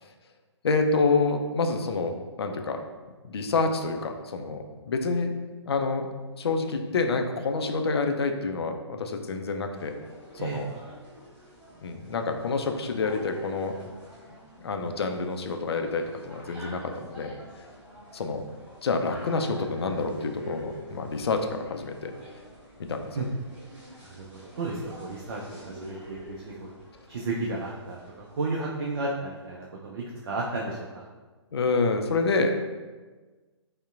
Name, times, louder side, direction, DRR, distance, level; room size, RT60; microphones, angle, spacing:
voice 1, 0.6-2.8 3.2-5.3 5.7-6.1 6.4-9.9 10.3-10.7 11.8-13.8 14.6-17.3 18.1-18.4 18.8-22.1 22.9-23.1 31.5-32.7, left 3 dB, 60° left, 5 dB, 0.4 m, -27 dB
sound 1, 9.7-29.0, equal, 10° right, 1.0 m, -47 dB
voice 2, 24.0-26.7 27.1-31.1, right 3 dB, 50° right, -3 dB, 0.5 m, -33 dB
5.1 x 2.1 x 2.4 m, 1.3 s
figure-of-eight pair, 125°, 15 cm